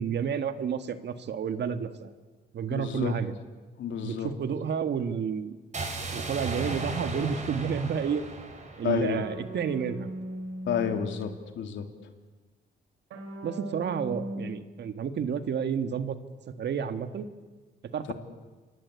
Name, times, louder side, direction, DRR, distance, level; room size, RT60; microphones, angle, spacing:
voice 1, 0.0-2.1 2.5-3.3 4.0-5.6 6.1-8.2 8.8-10.1 13.4-16.2 16.6-17.3 17.9-18.1, right 7 dB, 60° right, 9 dB, 2.0 m, -30 dB
voice 2, 2.7-3.1 3.8-4.3 8.8-9.2 10.7-11.8 18.1-18.2, left 8 dB, 70° left, 6 dB, 3.3 m, -30 dB
sound 1, 5.7-9.8, right 3 dB, 35° right, 5.8 m, -36 dB
sound 2, 9.1-11.4 13.1-14.5, right 1 dB, 85° right, 5.4 m, -39 dB
28.5 x 24.0 x 8.4 m, 1.3 s
cardioid pair, 90°, 20 cm